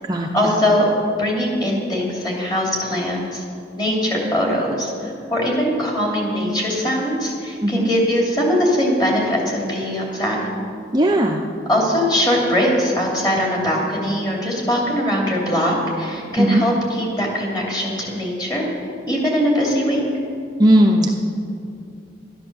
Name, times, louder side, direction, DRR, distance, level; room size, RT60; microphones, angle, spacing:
voice 1, 0.3-0.8 1.2-3.4 3.8-10.4 11.7-18.6 19.1-20.0, equal, 25° left, -3 dB, 2.9 m, -21 dB
voice 2, 10.9-11.4 16.4-16.6 20.6-21.1, right 1 dB, 20° right, 1 dB, 0.6 m, -16 dB
12.0 x 10.5 x 6.9 m, 2.5 s
head